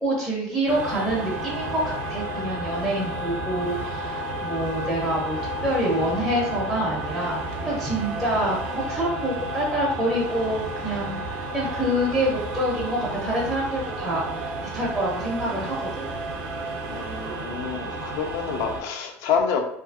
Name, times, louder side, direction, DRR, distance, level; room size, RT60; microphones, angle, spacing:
voice 1, 0.0-16.2, right 1 dB, ahead, -5 dB, 0.5 m, -27 dB
sound 1, 0.7-18.8, right 1 dB, 80° right, 0.5 m, -32 dB
voice 2, 16.9-19.6, left 6 dB, 65° left, 3 dB, 0.3 m, -27 dB
2.5 x 2.4 x 2.3 m, 0.72 s
cardioid pair, 140°, 7 cm